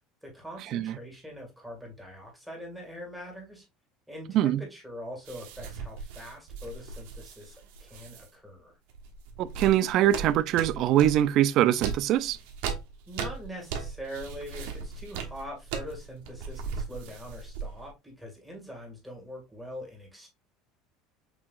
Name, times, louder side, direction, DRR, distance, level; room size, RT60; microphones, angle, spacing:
voice 1, 0.2-3.7 4.1-8.8 13.1-20.3, equal, ahead, 1.8 m, -43 dB
sound 1, 5.2-8.3 8.9-11.2 11.7-17.9, right 5 dB, 80° right, 1.0 m, -38 dB
voice 2, 9.4-12.4, right 12 dB, 50° right, 0.3 m, -23 dB
5.9 x 2.9 x 2.4 m
cardioid pair, 155°, 0 cm